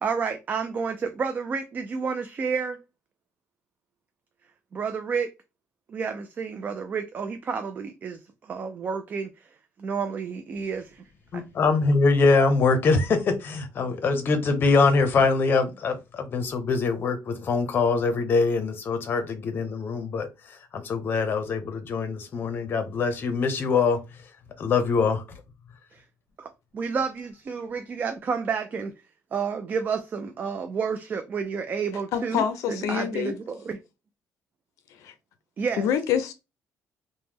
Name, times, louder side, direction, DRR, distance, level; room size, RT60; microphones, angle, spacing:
voice 1, 0.0-0.9 1.2-2.7 4.8-5.3 5.9-7.6 8.0-8.1 8.5-9.2 9.8-10.8 26.8-28.9 29.3-32.4 32.7-33.3 35.6-35.9, right 5 dB, 35° right, 0.3 m, -29 dB
voice 2, 11.3-24.0 24.6-25.2, left 4 dB, 40° left, 0.7 m, -23 dB
voice 3, 32.1-33.3 35.0-35.1 35.8-36.3, left 8 dB, 80° left, 0.4 m, -26 dB
3.0 x 2.1 x 3.4 m
cardioid pair, 145°, 5 cm